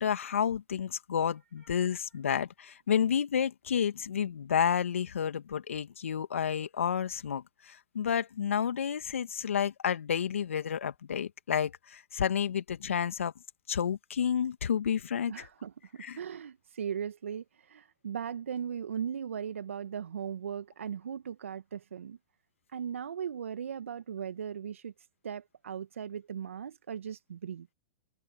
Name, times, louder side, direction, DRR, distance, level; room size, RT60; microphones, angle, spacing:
voice 1, 0.0-13.3 13.7-15.5 16.0-16.2, left 8 dB, 75° left, 2.0 m, -30 dB
voice 2, 15.3-22.2 22.7-24.9 25.2-27.7, right 8 dB, 75° right, 1.4 m, -38 dB
hypercardioid pair, 105°, 7 cm